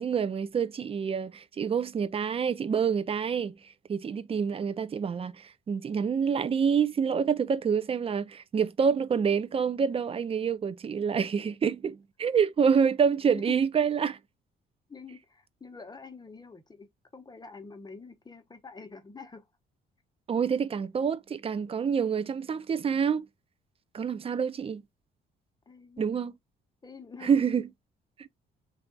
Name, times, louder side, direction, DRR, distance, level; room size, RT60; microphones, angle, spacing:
voice 1, 0.0-3.6 3.9-14.2 20.3-23.3 23.9-24.8 26.0-26.3 27.2-27.6 28.2-28.3, right 6 dB, 30° right, 0.4 m, -27 dB
voice 2, 14.9-19.4 25.7-26.2 26.8-27.4, left 4 dB, 20° left, 0.8 m, -46 dB
3.3 x 2.3 x 3.8 m
cardioid pair, 90°, 20 cm